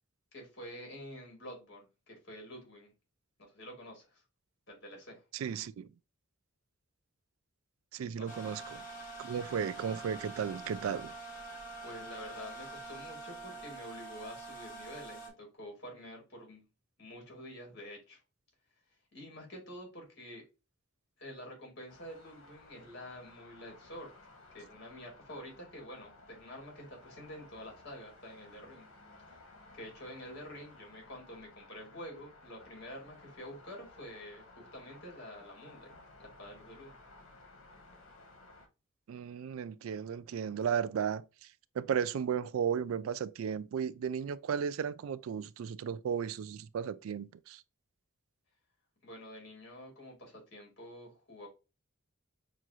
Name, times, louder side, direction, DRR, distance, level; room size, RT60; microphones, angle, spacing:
voice 1, 0.3-2.9 3.4-4.2 4.7-5.2 8.2-8.3 11.8-16.6 17.0-18.2 19.1-20.4 21.2-24.1 24.5-28.9 29.7-35.9 36.2-36.9 49.0-51.5, equal, 55° left, 2.5 m, -48 dB
voice 2, 5.3-5.9 7.9-8.8 9.2-11.1 39.1-41.5 41.7-47.6, right 7 dB, 80° right, 0.3 m, -35 dB
sound 1, 8.3-15.3, right 2 dB, 40° left, 1.3 m, -46 dB
sound 2, 21.9-38.7, left 2 dB, 90° left, 1.2 m, -57 dB
6.1 x 2.5 x 2.8 m
head